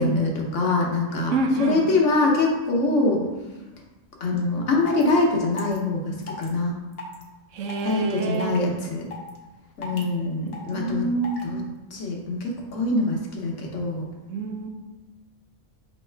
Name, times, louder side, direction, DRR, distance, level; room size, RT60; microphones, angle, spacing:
voice 1, 0.0-3.2 4.2-6.7 7.8-9.1 9.8-11.0 11.4-11.6 11.9-14.1, left 2 dB, 70° left, -1 dB, 1.2 m, -24 dB
voice 2, 1.3-1.9 7.5-8.6 10.7-11.5 14.3-14.7, right 3 dB, 75° right, 4 dB, 1.0 m, -27 dB
sound 1, 4.4-4.5 4.8-5.1 5.6-5.8 6.2-6.5 6.9-7.2 7.7-7.9 8.3-8.6 9.1-9.4 9.8-10.0 10.5-10.7 11.2-11.4, left 3 dB, 55° left, 0.9 m, -36 dB
5.2 x 3.1 x 3.2 m, 1.1 s
omnidirectional pair, 1.3 m